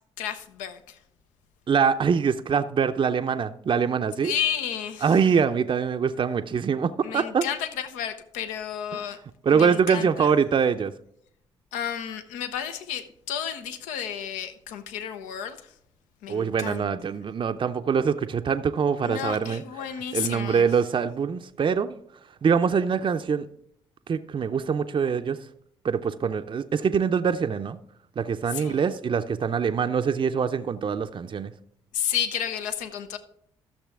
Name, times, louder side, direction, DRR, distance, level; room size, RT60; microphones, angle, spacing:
voice 1, 0.2-1.0 4.2-5.1 7.0-9.2 9.5-10.3 11.7-15.7 16.2-16.9 19.0-20.7 28.5-28.8 31.9-33.2, left 9 dB, 80° left, 0.7 m, -32 dB
voice 2, 1.7-4.3 5.0-7.5 8.9-9.0 9.4-10.9 16.3-22.0 22.4-23.5 24.1-25.4 25.8-27.8 28.2-31.5, right 6 dB, 40° right, 0.5 m, -24 dB
13.0 x 6.6 x 3.5 m
hypercardioid pair, 45°, 13 cm